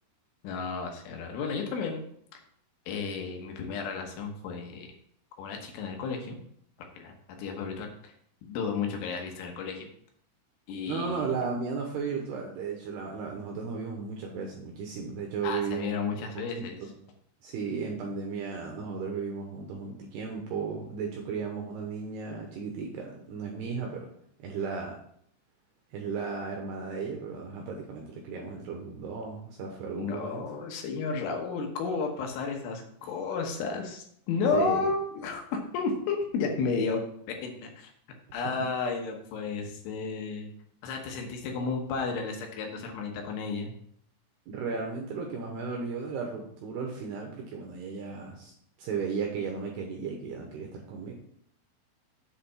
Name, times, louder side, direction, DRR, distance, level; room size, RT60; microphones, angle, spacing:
voice 1, 0.4-2.0 2.9-4.9 5.4-6.4 6.9-8.1 8.4-9.9 10.7-11.3 15.4-16.8 29.9-37.9 38.3-40.5 40.8-43.7, left 4 dB, 75° left, 2 dB, 3.5 m, -32 dB
voice 2, 10.9-15.9 16.2-16.9 17.4-24.1 24.4-25.0 25.9-30.4 34.5-34.9 44.5-48.5 48.8-51.1, right 5 dB, 75° right, 1 dB, 2.5 m, -35 dB
7.6 x 5.0 x 5.6 m, 0.66 s
omnidirectional pair, 5.8 m